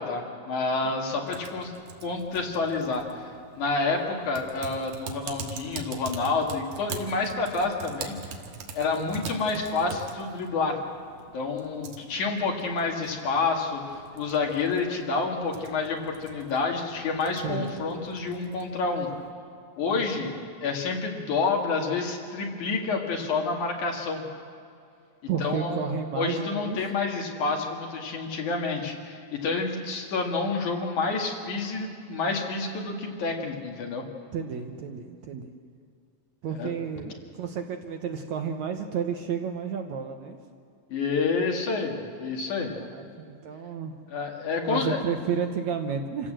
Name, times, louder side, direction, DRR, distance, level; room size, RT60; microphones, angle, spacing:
voice 1, 0.0-1.7 2.0-3.2 3.5-8.4 8.7-10.8 11.3-19.1 19.8-24.2 25.4-25.8 26.2-34.0 36.6-36.7 40.9-42.7 44.1-45.0, left 4 dB, 60° left, 1 dB, 3.5 m, -28 dB
voice 2, 0.8-1.2 9.0-9.6 17.4-17.7 19.8-20.1 25.3-26.8 34.3-35.5 36.4-40.4 42.7-43.9 44.7-46.3, right 6 dB, 65° right, 5 dB, 2.0 m, -32 dB
Typing, 1.3-19.3, right 5 dB, 85° right, 3.3 m, -44 dB
27.0 x 16.0 x 7.6 m, 2.4 s
omnidirectional pair, 4.0 m